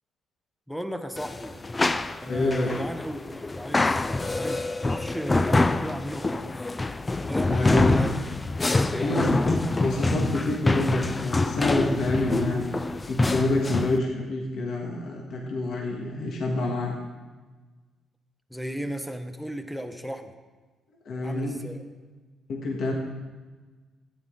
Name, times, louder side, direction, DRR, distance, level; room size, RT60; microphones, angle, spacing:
voice 1, 0.7-1.6 2.2-6.3 7.3-8.2 8.6-9.2 18.5-20.3 21.2-21.8, equal, ahead, 7 dB, 0.8 m, -35 dB
sound 1, 1.2-14.0, left 2 dB, 20° left, 0.4 m, -25 dB
voice 2, 2.3-2.8 7.4-8.0 9.0-12.7 13.1-17.0 21.0-21.6 22.5-22.9, left 2 dB, 65° left, -1 dB, 1.6 m, -27 dB
13.5 x 9.1 x 3.8 m, 1.3 s
cardioid pair, 90°, 0 cm